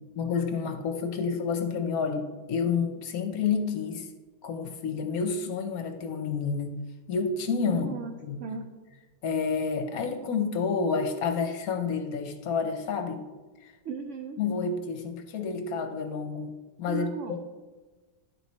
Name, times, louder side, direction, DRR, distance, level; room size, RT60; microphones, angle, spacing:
voice 1, 0.1-4.1 4.4-6.7 7.1-7.9 8.2-8.4 9.2-13.2 13.6-13.7 14.4-17.4, left 5 dB, 65° left, 6 dB, 1.0 m, -29 dB
voice 2, 7.7-8.1 8.4-8.7 13.8-14.4 16.9-17.4, right 5 dB, 70° right, 5 dB, 0.7 m, -36 dB
10.5 x 4.7 x 4.1 m, 1.2 s
omnidirectional pair, 1.9 m